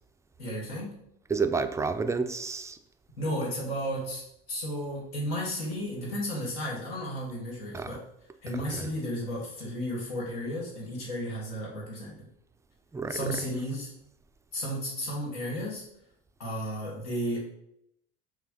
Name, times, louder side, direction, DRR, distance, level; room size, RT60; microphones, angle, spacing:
voice 1, 0.4-1.0 3.2-8.0 8.4-12.3 13.1-13.9 14.5-15.8 16.4-17.4, equal, 80° left, -4 dB, 1.7 m, -33 dB
voice 2, 1.3-2.8 7.7-8.0 8.7-8.8 12.9-13.2, right 4 dB, 10° right, 9 dB, 0.3 m, -30 dB
5.6 x 2.2 x 3.8 m, 0.76 s
hypercardioid pair, 75°, 29 cm